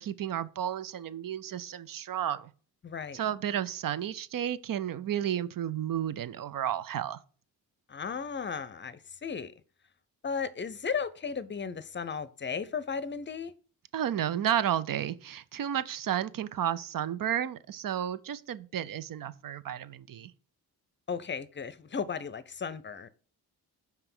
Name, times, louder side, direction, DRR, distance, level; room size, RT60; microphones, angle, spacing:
voice 1, 0.0-2.5 3.1-7.2 13.9-20.3, right 10 dB, 55° right, 0.6 m, -32 dB
voice 2, 2.8-3.2 7.9-9.5 10.2-13.5 21.1-23.1, left 6 dB, 30° left, 0.6 m, -35 dB
5.7 x 4.5 x 6.1 m
cardioid pair, 90°, 39 cm